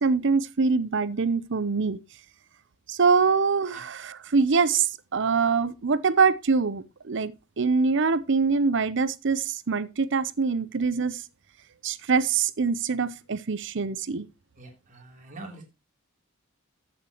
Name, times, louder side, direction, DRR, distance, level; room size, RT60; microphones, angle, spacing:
voice 1, 0.0-2.0 2.9-11.2 11.8-14.3, right 5 dB, 60° right, 0.7 m, -24 dB
voice 2, 14.6-15.6, right 2 dB, 40° right, 3.2 m, -44 dB
13.5 x 7.3 x 3.0 m
head